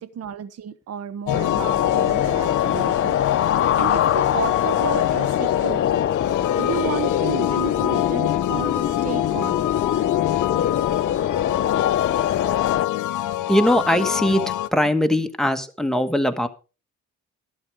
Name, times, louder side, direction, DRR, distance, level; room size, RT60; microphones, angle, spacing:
voice 1, 0.0-3.2 3.8-5.9 6.6-9.6, right 9 dB, 55° right, 1.1 m, -32 dB
sound 1, 1.3-14.7, left 13 dB, 80° left, 0.9 m, -26 dB
sound 2, 1.3-12.9, left 10 dB, 45° left, 0.6 m, -23 dB
voice 2, 13.5-14.4 14.7-16.5, equal, ahead, 1.5 m, -20 dB
12.5 x 8.8 x 4.9 m
cardioid pair, 90°, 30 cm